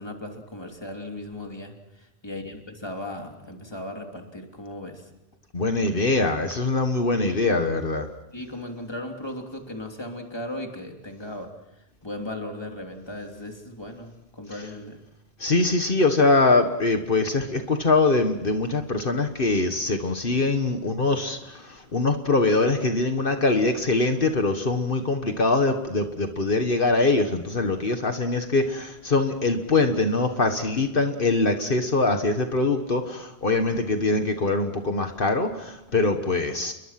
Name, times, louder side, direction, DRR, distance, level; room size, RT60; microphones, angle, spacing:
voice 1, 0.0-5.1 7.1-7.5 8.3-11.5 12.0-15.0, left 1 dB, 25° left, 2 dB, 3.2 m, -37 dB
voice 2, 5.5-8.1 15.4-36.7, left 3 dB, 60° left, 6 dB, 1.7 m, -23 dB
29.5 x 22.0 x 6.0 m, 0.91 s
omnidirectional pair, 1.0 m